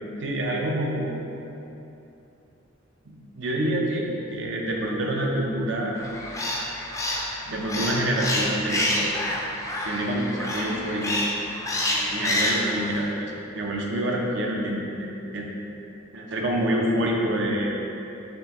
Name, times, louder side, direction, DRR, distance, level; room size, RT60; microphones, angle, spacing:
voice 1, 0.2-1.1 3.1-6.0 7.5-9.1 9.9-11.1 12.0-15.5 16.1-17.8, right 1 dB, 65° right, -1 dB, 0.6 m, -27 dB
sound 1, 6.0-13.0, left 1 dB, 15° left, 0.4 m, -28 dB
4.3 x 3.2 x 3.0 m, 2.9 s
head